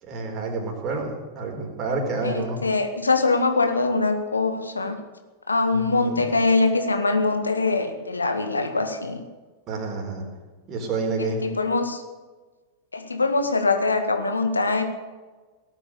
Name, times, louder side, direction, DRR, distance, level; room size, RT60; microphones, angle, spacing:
voice 1, 0.0-2.6 5.7-6.2 9.7-10.2 10.7-11.4, right 3 dB, 35° right, 1 dB, 4.4 m, -29 dB
voice 2, 2.2-5.0 5.5-9.2 11.2-12.0 12.9-14.8, left 3 dB, 80° left, 6 dB, 1.9 m, -23 dB
18.0 x 9.1 x 8.2 m, 1.3 s
figure-of-eight pair, 90°, 0 cm